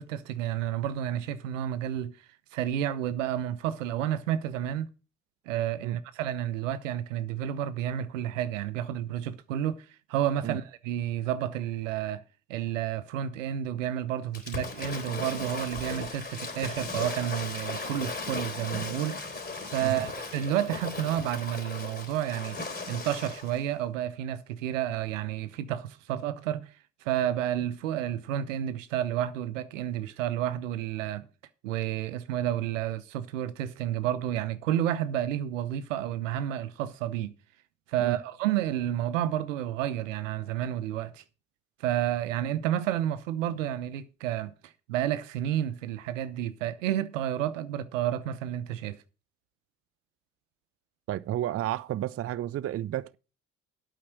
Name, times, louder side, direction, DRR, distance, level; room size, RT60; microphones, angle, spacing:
voice 1, 0.0-2.1 2.5-4.9 5.5-12.2 12.5-19.3 19.7-22.6 22.9-26.7 27.0-31.3 31.6-37.3 37.9-41.2 41.8-49.0, right 11 dB, 85° right, 0.8 m, -30 dB
Waves surf / Splash splatter, 14.3-23.6, left 3 dB, 25° left, 3.5 m, -37 dB
voice 2, 51.1-53.2, right 13 dB, 40° right, 0.5 m, -32 dB
8.6 x 5.6 x 7.8 m
hypercardioid pair, 60°, 37 cm